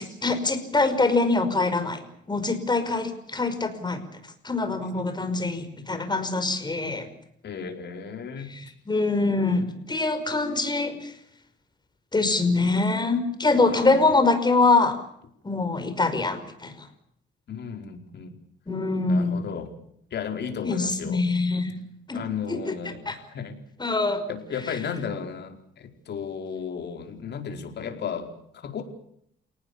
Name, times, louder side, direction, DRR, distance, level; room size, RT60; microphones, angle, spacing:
voice 1, 0.0-2.0 2.3-4.0 4.4-7.1 8.5-11.1 12.1-15.0 15.4-16.7 18.7-19.5 20.6-21.7 22.1-22.7 23.1-23.2 23.8-24.3, left 3 dB, 20° left, 9 dB, 5.5 m, -24 dB
voice 2, 7.4-8.5 13.7-14.1 17.5-18.3 19.1-19.7 20.1-21.2 22.1-23.6 24.3-28.8, left 6 dB, 60° left, 5 dB, 4.7 m, -34 dB
29.5 x 19.0 x 7.0 m, 0.69 s
cardioid pair, 90°, 20 cm